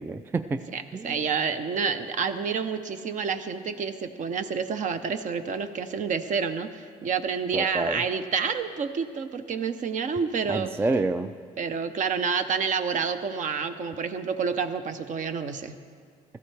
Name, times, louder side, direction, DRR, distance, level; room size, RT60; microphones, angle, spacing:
voice 1, 0.0-0.7 0.9-1.2 7.5-8.0 10.5-11.3, right 3 dB, 15° right, 10 dB, 0.3 m, -28 dB
voice 2, 0.7-10.7 11.6-15.8, right 6 dB, 50° right, 10 dB, 0.7 m, -29 dB
16.0 x 14.0 x 3.4 m, 2.1 s
cardioid pair, 110°, 17 cm